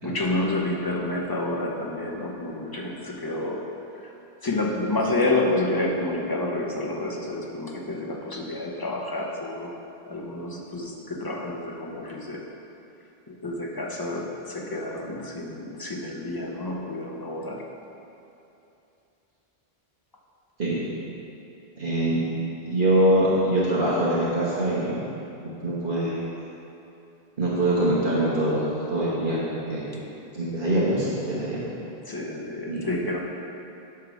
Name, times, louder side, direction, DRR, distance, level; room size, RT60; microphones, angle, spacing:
voice 1, 0.0-3.6 4.4-9.7 10.1-12.4 13.3-17.6 32.1-33.2, left 2 dB, 25° left, -1 dB, 0.8 m, -29 dB
voice 2, 21.8-22.2 22.7-25.0 25.4-26.2 27.4-28.6 28.9-31.6 32.7-32.9, right 1 dB, 55° right, -8 dB, 1.4 m, -24 dB
9.4 x 3.7 x 6.2 m, 2.8 s
omnidirectional pair, 1.1 m